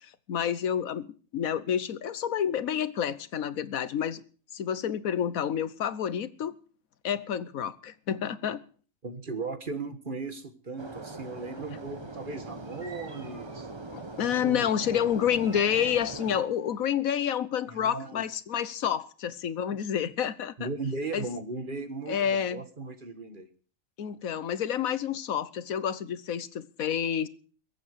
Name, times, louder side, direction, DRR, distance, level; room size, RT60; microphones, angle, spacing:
voice 1, 0.3-1.1 1.3-4.2 4.5-6.6 7.0-8.6 13.9-20.7 21.1-21.3 22.1-22.6 24.0-27.3, left 9 dB, 90° left, 1.4 m, -29 dB
voice 2, 9.0-13.7 14.2-14.8 17.7-18.2 20.6-23.5, right 3 dB, 40° right, 1.7 m, -37 dB
sound 1, 10.8-16.4, right 2 dB, 20° right, 1.2 m, -41 dB
sound 2, 11.4-16.9, right 1 dB, 55° right, 2.4 m, -47 dB
22.0 x 8.4 x 6.6 m
omnidirectional pair, 1.4 m